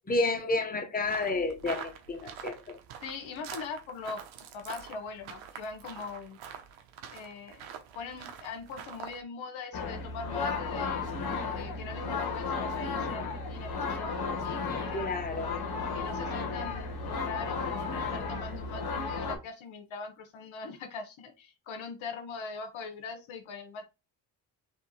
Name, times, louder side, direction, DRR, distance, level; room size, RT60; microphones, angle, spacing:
voice 1, 0.1-2.8 14.9-15.5, left 2 dB, 20° left, 0.9 m, -30 dB
sound 1, 1.0-9.2, right 8 dB, 80° right, 0.9 m, -45 dB
voice 2, 3.0-4.2 4.5-6.4 7.1-7.7 7.9-11.0 11.5-14.1 14.4-15.3 15.9-23.8, left 5 dB, 75° left, 1.1 m, -41 dB
sound 2, 9.7-19.4, left 4 dB, 50° left, 1.2 m, -34 dB
3.5 x 2.8 x 4.1 m
cardioid pair, 80°, 47 cm